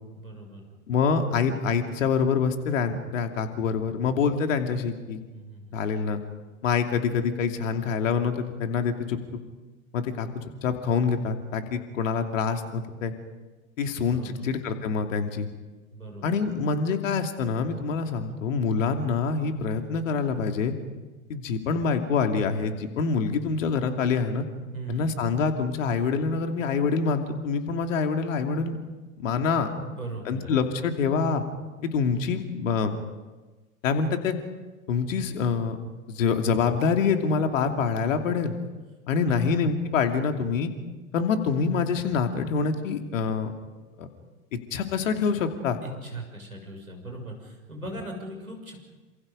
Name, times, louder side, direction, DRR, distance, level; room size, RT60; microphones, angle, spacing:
voice 1, 0.1-0.7 5.3-5.7 14.1-14.5 15.9-16.4 24.7-25.2 29.8-30.5 39.3-39.6 45.8-48.8, right 1 dB, 90° right, 2 dB, 6.6 m, -39 dB
voice 2, 0.9-5.2 5.7-6.2 6.6-9.2 9.9-13.1 13.8-15.5 16.2-20.7 21.3-24.4 24.9-28.8 29.2-29.7 30.3-31.4 31.8-33.0 33.8-34.3 34.9-35.8 36.1-38.6 39.1-40.7 41.1-43.5 44.0-44.1 44.5-45.8, left 5 dB, 65° left, 6 dB, 2.9 m, -26 dB
28.5 x 26.5 x 5.3 m, 1.2 s
figure-of-eight pair, 85°, 42 cm